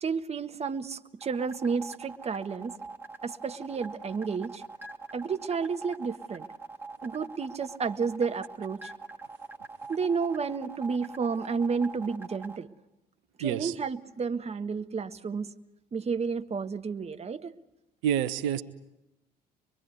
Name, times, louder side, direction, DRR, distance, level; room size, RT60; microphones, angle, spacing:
voice 1, 0.0-2.7 3.2-4.6 5.1-6.5 7.0-8.9 9.9-12.7 13.4-15.5 15.9-17.5, right 5 dB, 30° right, 11 dB, 1.5 m, -31 dB
sound 1, 1.2-12.6, right 4 dB, 10° right, 2.5 m, -43 dB
voice 2, 13.4-13.8 18.0-18.6, right 9 dB, 65° right, 13 dB, 1.1 m, -28 dB
25.5 x 23.5 x 8.3 m, 0.91 s
figure-of-eight pair, 55°, 20 cm